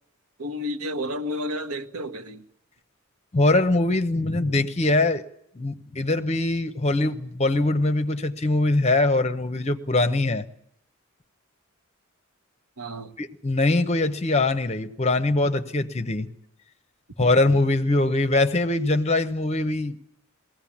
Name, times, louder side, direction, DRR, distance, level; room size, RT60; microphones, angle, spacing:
voice 1, 0.4-2.4 12.8-13.2, left 1 dB, 85° right, 1.2 m, -31 dB
voice 2, 3.3-5.2 5.6-10.5 13.2-16.3 17.2-20.0, left 2 dB, 30° left, 0.9 m, -22 dB
20.5 x 16.5 x 8.6 m
head